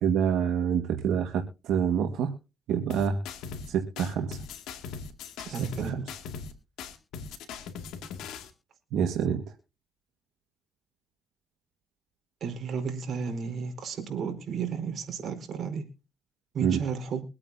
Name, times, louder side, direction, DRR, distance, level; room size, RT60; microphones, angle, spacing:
voice 1, 0.0-2.3 2.7-3.2 3.7-4.4 5.8-6.0 8.9-9.4 16.6-16.8, right 8 dB, 85° right, 4 dB, 1.6 m, -26 dB
sound 1, 2.9-3.7 4.0-6.5 6.8-8.5, left 6 dB, 90° left, 2.3 m, -40 dB
voice 2, 5.4-6.0 12.4-15.8 16.5-17.2, right 6 dB, 60° right, 5 dB, 4.5 m, -33 dB
24.0 x 8.8 x 2.7 m, 0.30 s
cardioid pair, 90°, 0 cm